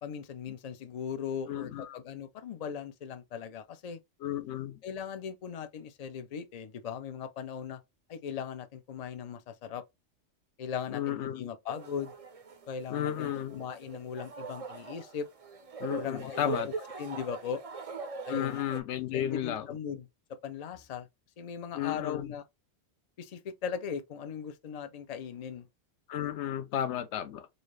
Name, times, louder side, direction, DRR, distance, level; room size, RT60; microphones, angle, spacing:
voice 1, 0.0-4.0 4.8-7.8 8.1-9.8 10.6-12.1 12.7-15.3 16.0-16.7 17.0-17.6 18.3-18.6 19.1-20.1 20.4-21.1 21.4-22.4 23.2-25.7, left 7 dB, 50° left, 0.4 m, -38 dB
voice 2, 1.5-2.0 4.2-4.8 10.9-11.5 12.9-13.7 15.8-16.7 18.3-19.7 21.7-22.3 26.1-27.5, left 11 dB, 70° left, 0.8 m, -33 dB
sound 1, 11.7-18.8, right 4 dB, 45° right, 0.5 m, -41 dB
4.0 x 2.4 x 3.1 m
omnidirectional pair, 1.3 m